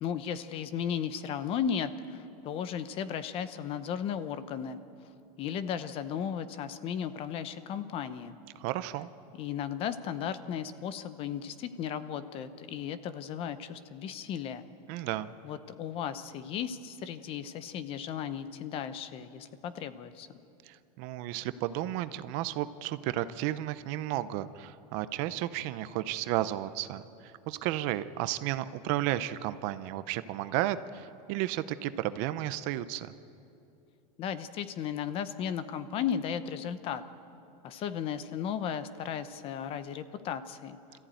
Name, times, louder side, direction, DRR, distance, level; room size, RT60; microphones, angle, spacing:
voice 1, 0.0-4.8 5.4-8.4 9.3-14.7 15.4-20.3 34.2-37.0 37.6-41.0, left 8 dB, 30° left, 12 dB, 0.8 m, -35 dB
voice 2, 8.6-9.1 14.9-15.3 20.7-33.1, right 14 dB, 40° right, 13 dB, 0.7 m, -33 dB
27.5 x 14.5 x 9.1 m, 2.7 s
supercardioid pair, 165°, 20 cm